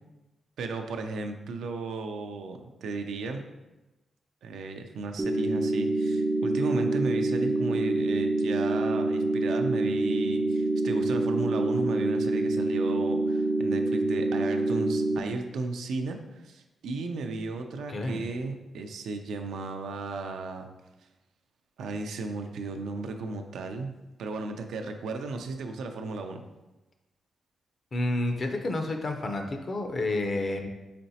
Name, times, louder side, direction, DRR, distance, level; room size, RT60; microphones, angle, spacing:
voice 1, 0.6-3.4 4.4-20.7 21.8-23.9 24.2-26.4, right 3 dB, 85° right, 5 dB, 0.4 m, -35 dB
sound 1, 5.2-15.2, right 2 dB, 20° right, 0.4 m, -26 dB
voice 2, 17.9-18.2 27.9-30.7, left 2 dB, 45° left, 4 dB, 0.6 m, -29 dB
4.2 x 3.9 x 2.7 m, 1.0 s
cardioid pair, 85°, 0 cm